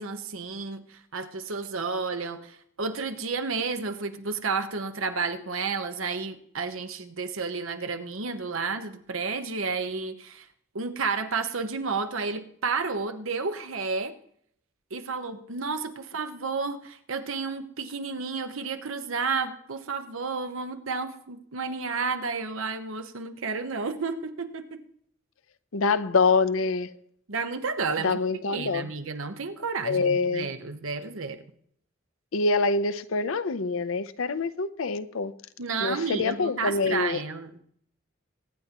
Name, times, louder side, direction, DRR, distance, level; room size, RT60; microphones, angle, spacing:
voice 1, 0.0-10.5 10.7-14.1 14.9-24.8 27.3-28.2 28.5-31.4 35.6-37.6, right 4 dB, 90° right, 1.1 m, -31 dB
voice 2, 25.7-26.9 28.0-28.9 29.8-30.5 32.3-35.3 35.8-37.2, left 4 dB, 85° left, 0.6 m, -25 dB
23.0 x 9.6 x 3.0 m
head